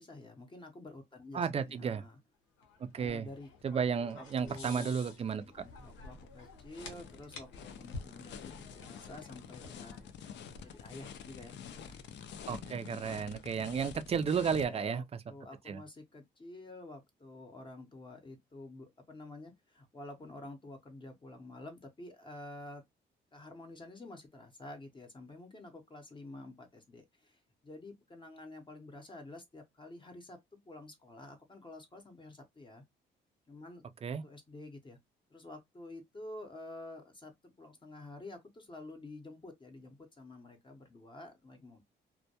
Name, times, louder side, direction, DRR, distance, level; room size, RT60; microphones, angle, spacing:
voice 1, 0.0-2.2 2.9-3.5 4.0-5.1 5.4-10.0 10.6-12.0 13.0-13.4 14.7-22.8 23.3-32.8 33.5-33.8 34.2-35.0 35.3-41.8, left 2 dB, 25° left, 0.7 m, -49 dB
voice 2, 1.3-2.0 2.8-3.3 3.6-5.6 12.5-15.2 15.7-15.8 34.0-34.2, right 6 dB, 30° right, 0.4 m, -33 dB
sound 1, 2.6-11.1, left 3 dB, 85° left, 0.8 m, -51 dB
sound 2, 5.6-14.7, left 7 dB, 65° left, 0.4 m, -48 dB
2.2 x 2.1 x 2.7 m
cardioid pair, 90°, 20 cm